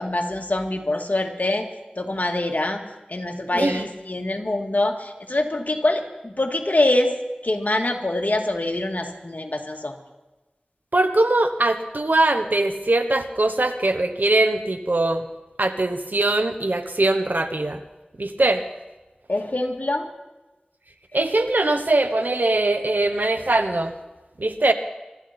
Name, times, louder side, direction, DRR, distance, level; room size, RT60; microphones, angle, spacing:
voice 1, 0.0-1.7 2.0-2.8 3.1-7.1 7.4-10.0 19.3-20.1, left 2 dB, 60° left, 2 dB, 2.0 m, -24 dB
voice 2, 3.5-3.8 10.9-15.2 15.6-17.8 18.2-18.6 21.1-23.9 24.4-24.7, right 2 dB, 70° right, 8 dB, 1.2 m, -21 dB
24.0 x 13.0 x 4.4 m, 1.1 s
wide cardioid pair, 40°, 3 cm